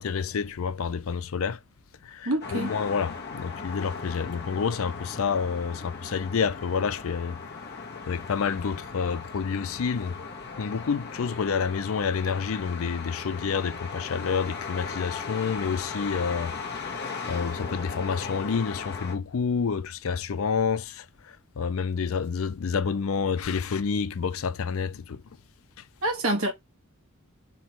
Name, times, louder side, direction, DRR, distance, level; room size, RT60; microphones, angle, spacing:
voice 1, 0.0-1.6 2.0-7.4 8.1-10.1 10.6-16.5 16.8-16.9 17.3-25.2, left 6 dB, 65° left, 0.4 m, -29 dB
voice 2, 2.2-2.7 26.0-26.5, right 1 dB, 65° right, 1.3 m, -26 dB
sound 1, 2.4-19.2, left 4 dB, 50° left, 1.1 m, -38 dB
3.5 x 3.0 x 4.3 m
head